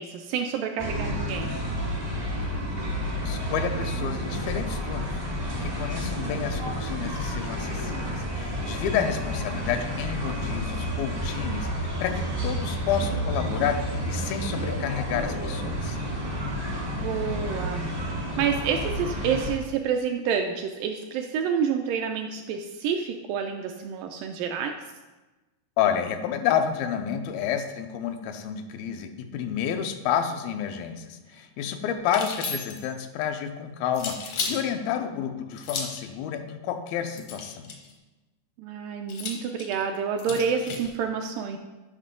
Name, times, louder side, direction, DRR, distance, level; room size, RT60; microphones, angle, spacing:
voice 1, 0.0-1.6 17.0-17.8 18.2-24.8 38.6-41.6, right 7 dB, 80° right, 5 dB, 2.0 m, -28 dB
sound 1, 0.8-19.5, equal, 35° right, 0.6 m, -30 dB
voice 2, 3.2-16.0 25.8-37.7, left 8 dB, 85° left, 7 dB, 2.5 m, -30 dB
sound 2, 32.0-32.9 33.9-34.6 35.6-36.1 37.1-37.9 39.1-40.9, left 4 dB, 70° left, 1.5 m, -34 dB
10.0 x 5.7 x 3.7 m, 1.1 s
omnidirectional pair, 4.2 m